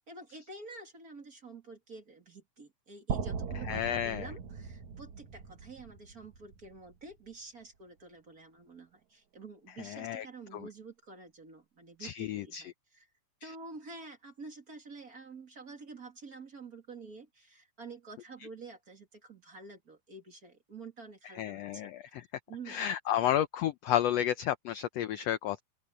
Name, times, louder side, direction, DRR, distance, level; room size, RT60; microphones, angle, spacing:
voice 1, 0.1-13.1 13.4-22.1 22.5-23.3, right 3 dB, 30° right, 2.4 m, -49 dB
sound 1, 3.1-7.1, right 6 dB, 65° right, 3.1 m, -39 dB
voice 2, 3.7-4.3 9.9-10.2 12.0-12.6 21.4-22.2 22.7-25.6, left 11 dB, 75° left, 1.5 m, -31 dB
open air
omnidirectional pair, 3.6 m